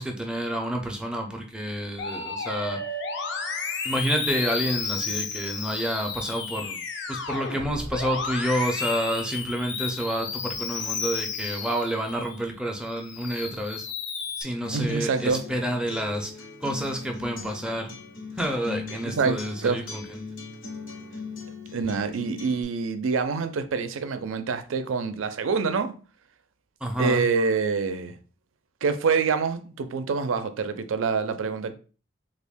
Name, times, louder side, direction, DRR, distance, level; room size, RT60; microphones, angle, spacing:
voice 1, 0.0-2.8 3.8-6.8 7.1-13.9 14.4-16.3 16.6-17.9 18.4-20.0 26.8-27.2, right 1 dB, 5° right, 0.4 m, -29 dB
Musical instrument, 2.0-12.4 12.9-14.4, left 5 dB, 60° left, 0.5 m, -32 dB
Acoustic guitar, 14.6-22.6, left 4 dB, 80° left, 0.9 m, -39 dB
voice 2, 14.7-15.4 19.2-19.8 21.7-25.9 27.0-28.1 28.8-31.7, right 5 dB, 85° right, 0.4 m, -26 dB
3.4 x 2.3 x 3.5 m
head